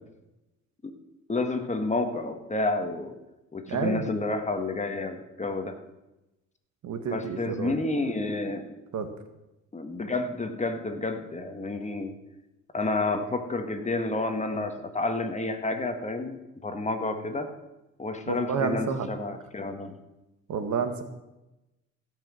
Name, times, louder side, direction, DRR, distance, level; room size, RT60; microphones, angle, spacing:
voice 1, 1.3-3.1 3.5-5.8 7.1-8.7 9.7-12.1 12.7-17.5 18.0-20.0, left 2 dB, 25° left, 6 dB, 1.7 m, -30 dB
voice 2, 3.7-4.1 6.8-7.7 8.9-9.1 18.3-19.1 20.5-21.0, right 6 dB, 70° right, 8 dB, 1.6 m, -29 dB
16.0 x 6.0 x 7.6 m, 0.97 s
cardioid pair, 90°, 30 cm